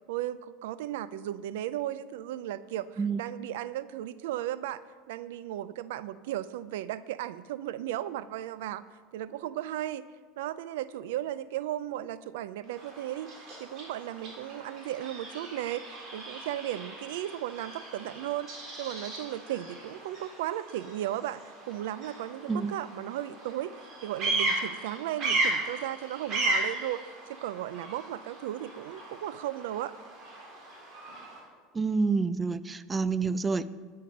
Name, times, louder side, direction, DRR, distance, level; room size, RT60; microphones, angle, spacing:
voice 1, 0.1-4.8 5.1-8.8 9.1-10.0 10.4-13.3 13.6-15.9 16.1-18.5 18.8-21.4 21.7-27.0 27.3-29.9, right 13 dB, 85° right, 16 dB, 0.5 m, -35 dB
Bird vocalization bird call bird song, 12.6-31.4, right 2 dB, 45° right, 4.0 m, -36 dB
voice 2, 31.7-33.7, right 4 dB, 15° right, 15 dB, 0.4 m, -28 dB
11.5 x 9.3 x 5.3 m, 1.5 s
supercardioid pair, 135°, 0 cm